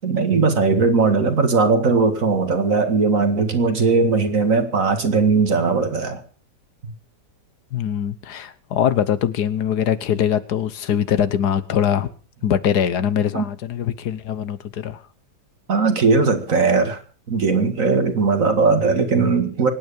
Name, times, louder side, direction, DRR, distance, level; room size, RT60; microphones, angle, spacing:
voice 1, 0.0-6.2 13.3-13.5 15.7-17.0 17.3-19.7, right 4 dB, 50° right, 8 dB, 2.2 m, -18 dB
voice 2, 7.7-12.1 12.4-15.0, left 9 dB, 75° left, 14 dB, 1.5 m, -22 dB
24.5 x 9.4 x 5.1 m, 0.38 s
omnidirectional pair, 1.8 m